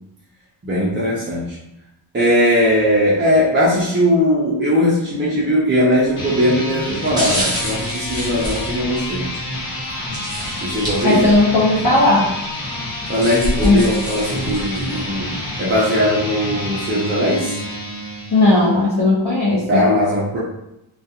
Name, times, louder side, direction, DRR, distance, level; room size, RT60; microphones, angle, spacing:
voice 1, 0.6-1.6 2.1-9.2 10.6-11.2 13.1-15.3 15.6-17.6 19.6-20.4, equal, 25° right, -7 dB, 0.4 m, -19 dB
sound 1, 5.9-6.2 6.9-9.4 10.1-11.6 11.9-12.0 12.8-15.0 15.5-15.6, equal, 10° right, 0.8 m, -27 dB
sound 2, 6.1-18.8, left 1 dB, 85° left, 1.1 m, -28 dB
voice 2, 11.0-12.3 13.6-13.9 18.3-19.8, left 2 dB, 50° left, -8 dB, 0.7 m, -15 dB
2.4 x 2.2 x 2.7 m, 0.85 s
wide cardioid pair, 175°, 49 cm